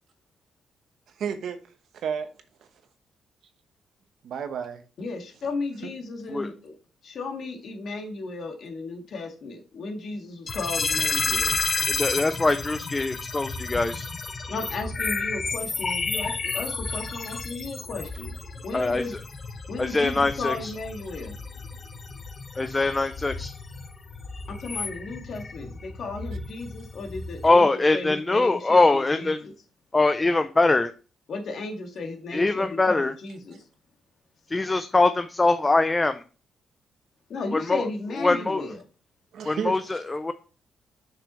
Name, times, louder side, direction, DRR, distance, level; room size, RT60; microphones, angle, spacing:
voice 1, 1.2-1.6 1.9-2.3 4.2-4.8 5.8-5.9 39.3-40.0, right 7 dB, 70° right, 0.9 m, -31 dB
voice 2, 5.0-6.7 7.0-11.6 14.5-18.3 18.6-19.2 19.7-21.4 24.5-29.5 31.3-33.6 37.3-38.8, left 3 dB, 55° left, 1.8 m, -34 dB
sound 1, 10.5-27.5, left 4 dB, 35° left, 0.8 m, -32 dB
voice 3, 11.9-14.1 18.7-19.0 19.8-20.7 22.6-23.5 27.4-29.4 29.9-30.9 32.3-33.1 34.5-36.2 37.5-37.8 38.2-38.7 39.4-40.3, left 2 dB, 20° left, 0.4 m, -22 dB
6.8 x 6.0 x 3.1 m
cardioid pair, 120°, 0 cm